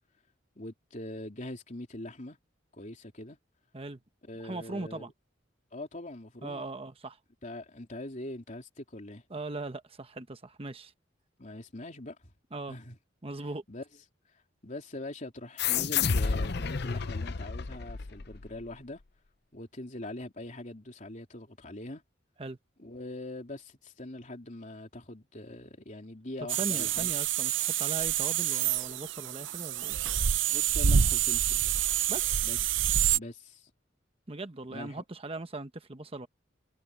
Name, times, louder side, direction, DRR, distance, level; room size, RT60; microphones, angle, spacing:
voice 1, 0.5-2.4 2.7-3.4 4.2-5.1 5.7-6.6 7.4-9.2 11.4-12.3 12.7-13.0 13.7-13.8 14.6-19.0 19.5-22.0 22.8-27.2 30.5-31.7 32.4-32.6 33.1-33.7 34.7-35.0, left 1 dB, 40° left, 3.3 m, -42 dB
voice 2, 4.4-5.1 6.4-7.2 9.3-10.9 12.5-12.8 13.2-13.6 22.4-22.6 26.5-30.0 32.1-32.4 34.3-36.3, right 2 dB, 30° right, 1.1 m, -39 dB
sound 1, 15.6-18.6, left 6 dB, 60° left, 0.7 m, -30 dB
sound 2, 26.5-33.2, right 9 dB, 75° right, 0.7 m, -27 dB
head